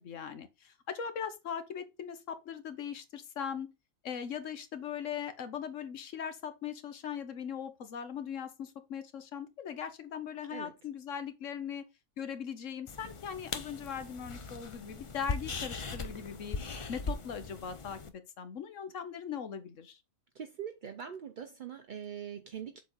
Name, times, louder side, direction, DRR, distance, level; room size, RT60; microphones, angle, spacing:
voice 1, 0.0-3.7 4.0-11.9 12.2-16.6 16.9-20.0, left 7 dB, 65° left, 1.2 m, -40 dB
sound 1, 12.9-18.1, left 4 dB, 40° left, 0.4 m, -39 dB
voice 2, 20.3-22.8, right 8 dB, 60° right, 0.5 m, -42 dB
7.3 x 4.1 x 3.9 m
omnidirectional pair, 1.5 m